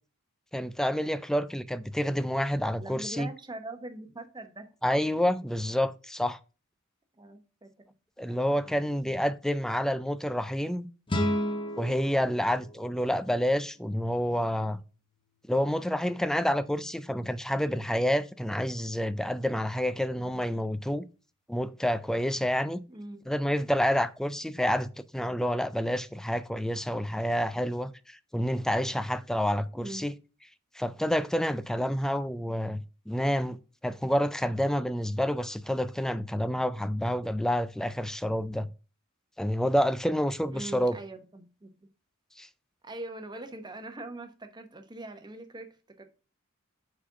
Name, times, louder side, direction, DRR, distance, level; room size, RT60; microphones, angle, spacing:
voice 1, 0.5-3.3 4.8-6.4 8.2-10.9 11.8-14.8 15.5-21.0 21.5-22.8 23.3-30.1 30.8-33.6 33.8-38.7 39.4-41.0 42.4-42.5, equal, ahead, 0.3 m, -28 dB
voice 2, 2.8-5.1 7.2-7.7 8.3-9.2 22.9-23.2 29.7-30.0 40.5-41.7 42.8-46.0, right 2 dB, 20° right, 0.9 m, -42 dB
sound 1, 11.1-14.1, equal, 25° left, 0.9 m, -33 dB
4.8 x 4.3 x 5.7 m
head